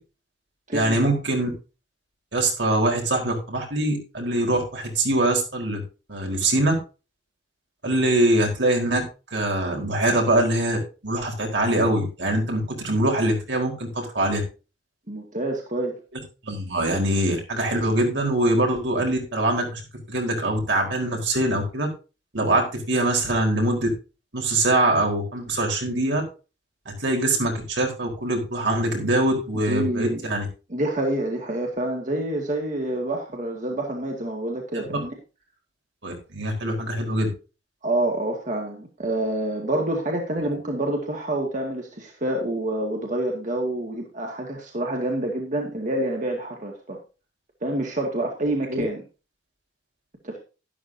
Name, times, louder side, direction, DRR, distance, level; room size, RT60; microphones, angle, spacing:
voice 1, 0.7-1.5 2.3-5.8 6.1-6.7 7.8-9.0 9.3-14.4 16.4-19.8 20.1-21.9 22.3-23.9 24.3-26.2 26.9-30.5 34.7-34.8 36.0-37.3 48.7-48.8, right 1 dB, 75° right, 1 dB, 4.4 m, -23 dB
voice 2, 15.1-16.0 29.7-30.2 30.7-35.1 37.8-47.0 47.6-49.0 50.2-50.4, right 1 dB, 45° right, 1 dB, 2.1 m, -27 dB
12.0 x 11.0 x 2.8 m, 0.32 s
head